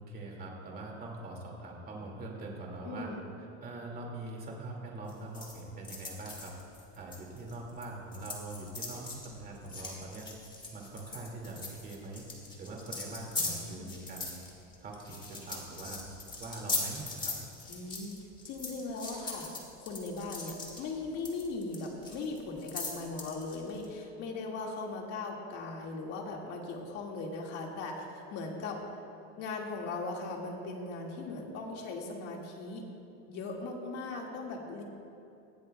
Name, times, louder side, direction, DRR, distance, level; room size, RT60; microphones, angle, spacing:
voice 1, 0.0-3.1 3.6-6.5 6.9-10.3 10.7-12.3 12.6-14.4 14.8-16.0 16.4-17.4, right 2 dB, 25° right, -1 dB, 2.3 m, -43 dB
voice 2, 2.8-3.3 13.4-14.1 17.7-28.8 29.4-32.9 33.3-34.8, left 3 dB, 45° left, 0 dB, 2.1 m, -39 dB
sound 1, 5.1-23.9, left 3 dB, 15° left, 1.8 m, -40 dB
19.5 x 14.5 x 2.3 m, 2.7 s
supercardioid pair, 150°, 35 cm